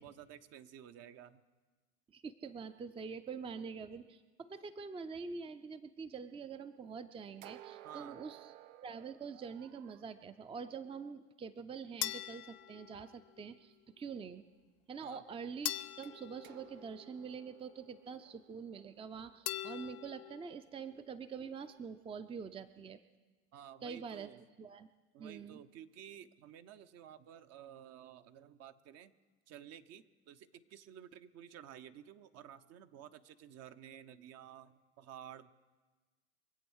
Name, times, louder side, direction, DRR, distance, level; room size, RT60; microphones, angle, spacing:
voice 1, 0.0-1.4 7.8-8.2 15.0-15.2 23.5-24.4 25.1-29.1 29.5-35.5, right 10 dB, 50° right, 10 dB, 0.9 m, -53 dB
voice 2, 2.1-8.5 8.8-14.4 14.9-23.0 23.8-24.3 24.6-24.9 25.2-25.6, right 5 dB, 15° right, 11 dB, 0.6 m, -45 dB
sound 1, 7.4-10.1 16.0-20.1, right 14 dB, 70° right, 0.6 m, -57 dB
sound 2, 12.0-13.5 15.6-17.5 19.4-20.6, left 15 dB, 50° left, 0.7 m, -43 dB
24.5 x 8.3 x 6.4 m, 1.3 s
hypercardioid pair, 95°, 33 cm